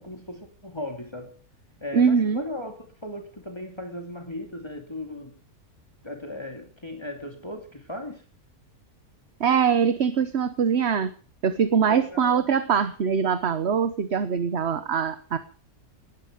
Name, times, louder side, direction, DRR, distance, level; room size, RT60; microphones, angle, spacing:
voice 1, 0.0-1.4 1.8-5.4 6.0-8.2 11.9-12.5, left 1 dB, 20° left, 4 dB, 2.6 m, -37 dB
voice 2, 1.9-2.4 9.4-11.1 11.4-15.4, right 6 dB, 50° right, 12 dB, 1.2 m, -23 dB
20.0 x 14.0 x 5.1 m, 0.40 s
omnidirectional pair, 1.6 m